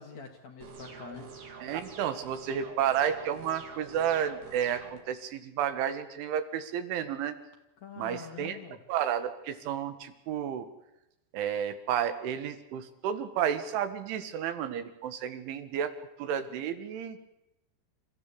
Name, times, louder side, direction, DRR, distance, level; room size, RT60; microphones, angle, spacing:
voice 1, 0.0-1.4 7.8-8.8, left 7 dB, 50° left, 4 dB, 2.3 m, -45 dB
sound 1, 0.6-5.0, right 5 dB, 55° right, 4.8 m, -46 dB
voice 2, 1.6-7.4 8.0-8.6 8.9-10.7 11.3-15.9 16.2-17.2, right 9 dB, 85° right, 10 dB, 4.1 m, -31 dB
28.0 x 15.0 x 8.5 m, 0.90 s
omnidirectional pair, 5.4 m